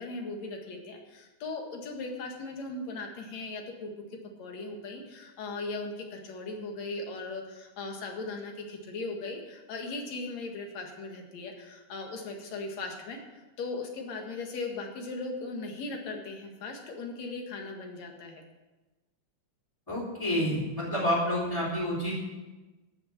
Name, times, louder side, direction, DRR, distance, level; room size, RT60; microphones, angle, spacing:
voice 1, 0.0-3.9 4.4-18.4, left 3 dB, 60° left, 2 dB, 3.0 m, -38 dB
voice 2, 19.9-22.2, equal, 5° left, -7 dB, 3.7 m, -29 dB
14.0 x 6.8 x 8.8 m, 1.2 s
omnidirectional pair, 3.6 m